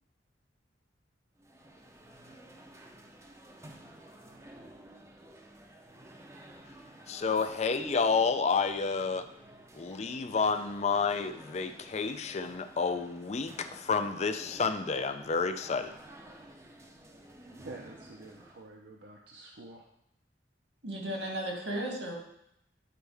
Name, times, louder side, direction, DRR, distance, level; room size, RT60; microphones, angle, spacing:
sound 1, 1.4-18.7, right 1 dB, 15° right, 0.6 m, -52 dB
voice 1, 7.1-9.3 9.7-16.0, left 5 dB, 40° left, 9 dB, 0.4 m, -30 dB
voice 2, 17.6-19.9, right 2 dB, 65° right, 0 dB, 0.7 m, -48 dB
voice 3, 20.8-22.1, right 1 dB, 80° right, -1 dB, 2.2 m, -35 dB
9.9 x 4.4 x 3.5 m, 0.77 s
head